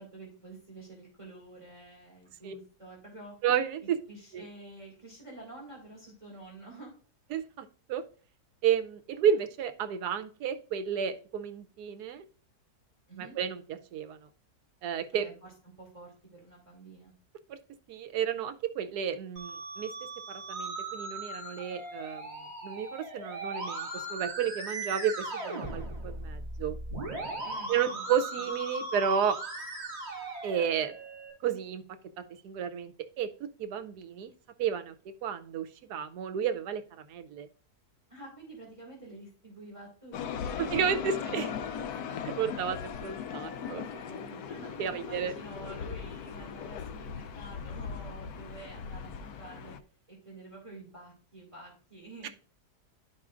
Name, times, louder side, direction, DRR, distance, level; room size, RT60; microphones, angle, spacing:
voice 1, 0.0-3.3 4.1-6.9 13.1-13.3 15.1-15.5 15.8-17.1 27.4-28.1 38.1-42.2 43.5-49.8 50.1-52.3, right 2 dB, 20° right, -3 dB, 2.5 m, -48 dB
voice 2, 3.4-4.0 4.3-4.4 7.3-8.0 8.6-12.2 13.2-14.2 14.8-15.3 17.5-17.6 17.9-19.9 20.3-22.3 22.6-26.8 27.7-29.4 30.4-30.9 31.4-31.8 32.2-33.3 33.6-34.3 34.6-34.9 35.2-37.5 40.6-41.5 42.2-43.8 44.8-45.3 52.2-52.3, right 8 dB, 90° right, 10 dB, 1.2 m, -32 dB
Musical instrument, 19.4-31.3, right 2 dB, 45° right, 2.1 m, -38 dB
sound 1, 40.1-49.8, left 7 dB, 75° left, 1.1 m, -39 dB
12.0 x 4.8 x 2.5 m, 0.40 s
omnidirectional pair, 1.7 m